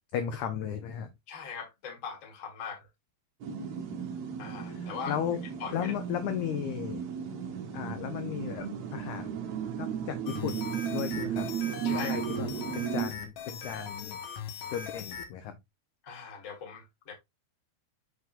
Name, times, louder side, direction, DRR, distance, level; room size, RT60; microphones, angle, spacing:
voice 1, 0.1-1.1 4.6-5.4 5.7-7.1 7.7-11.5 11.8-12.5 12.7-14.2 14.7-15.6, left 9 dB, 85° left, 1.7 m, -35 dB
voice 2, 1.3-2.9 4.4-5.2 5.6-5.9 11.8-12.2 16.0-17.1, left 6 dB, 50° left, 0.9 m, -40 dB
sound 1, 3.4-13.1, right 8 dB, 70° right, 1.7 m, -35 dB
sound 2, 10.3-15.3, left 6 dB, 65° left, 2.4 m, -40 dB
8.0 x 4.9 x 2.4 m
omnidirectional pair, 4.5 m